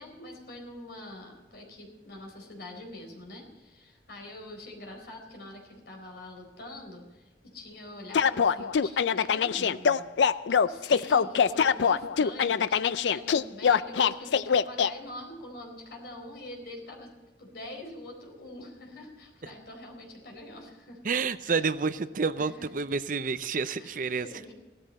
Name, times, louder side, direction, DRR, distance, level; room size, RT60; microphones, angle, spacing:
voice 1, 0.0-17.1 17.4-21.0 21.4-21.7 22.4-22.7 23.8-24.5, left 1 dB, 60° left, 1 dB, 4.2 m, -44 dB
sound 1, 8.1-14.9, left 6 dB, 75° left, 0.4 m, -23 dB
voice 2, 21.0-24.3, right 4 dB, 45° right, 13 dB, 0.5 m, -29 dB
16.5 x 13.0 x 4.2 m, 1.2 s
head